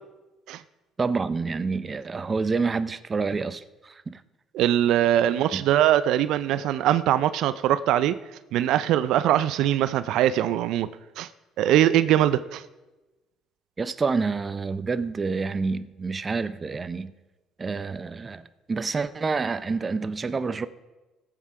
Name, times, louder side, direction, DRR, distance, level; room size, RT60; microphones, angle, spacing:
voice 1, 1.0-4.2 5.5-5.6 13.8-17.1 17.6-20.7, right 4 dB, 25° right, 0.5 m, -28 dB
voice 2, 4.5-8.2 8.5-10.9 11.2-11.3 11.6-12.6, right 12 dB, 75° right, 0.4 m, -22 dB
16.5 x 7.6 x 4.8 m
cardioid pair, 110°, 0 cm